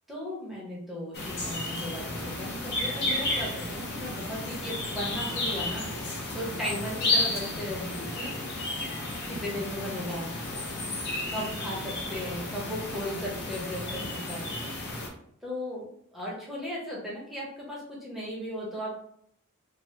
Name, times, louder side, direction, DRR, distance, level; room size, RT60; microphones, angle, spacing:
voice 1, 0.1-5.9 6.3-8.4 9.3-10.3 11.3-14.4 15.4-15.8 16.1-18.9, equal, ahead, -5 dB, 0.8 m, -36 dB
sound 1, 1.1-15.1, left 2 dB, 50° left, 0.8 m, -32 dB
3.2 x 2.1 x 3.0 m, 0.68 s
head